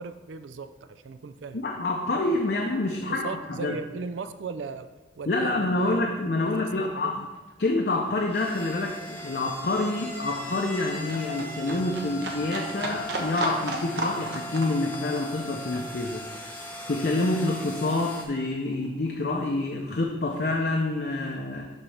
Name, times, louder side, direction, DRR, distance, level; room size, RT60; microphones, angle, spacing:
voice 1, 0.0-1.6 2.9-4.9 5.2-7.3, right 4 dB, 85° right, 11 dB, 0.4 m, -38 dB
voice 2, 1.5-3.7 5.3-7.2 7.6-16.2 16.9-21.7, left 2 dB, 55° left, 1 dB, 0.6 m, -27 dB
Livestock farm animals working animals, 6.8-17.7 18.1-19.1 19.4-19.5, right 2 dB, 65° right, 1.0 m, -36 dB
sound 1, 8.0-18.2, left 1 dB, 10° left, 0.9 m, -39 dB
11.5 x 4.0 x 3.3 m, 1.2 s
head